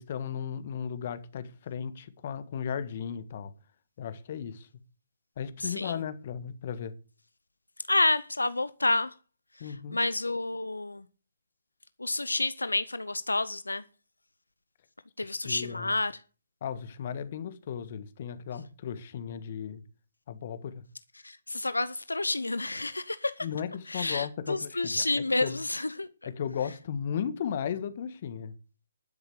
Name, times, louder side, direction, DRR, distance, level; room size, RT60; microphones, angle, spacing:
voice 1, 0.0-3.5 4.0-4.7 5.4-6.9 9.6-10.0 15.2-16.0 16.6-19.8 20.3-20.8 23.4-25.1 25.4-25.6 26.2-28.5, left 8 dB, 45° left, 1.5 m, -35 dB
voice 2, 5.6-6.0 7.9-9.1 9.6-11.0 12.0-13.8 15.2-16.2 21.2-23.5 23.9-26.1, left 2 dB, 90° left, 0.8 m, -29 dB
12.0 x 6.7 x 8.6 m
figure-of-eight pair, 145°, 0 cm